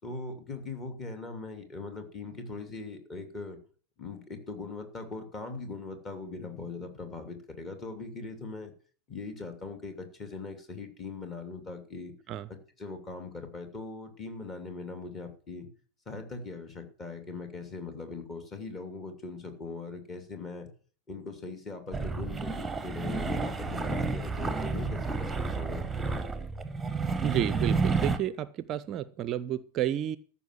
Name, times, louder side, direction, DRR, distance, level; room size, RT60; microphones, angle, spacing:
voice 1, 0.0-3.6 4.0-8.7 9.1-12.1 12.5-15.7 16.1-20.7 21.1-25.9, left 3 dB, 25° left, 6 dB, 2.7 m, -40 dB
sound 1, 21.9-28.2, right 4 dB, 10° right, 1.1 m, -31 dB
voice 2, 27.2-30.2, right 11 dB, 35° right, 16 dB, 0.5 m, -31 dB
14.0 x 5.7 x 7.6 m, 0.44 s
figure-of-eight pair, 90°, 0 cm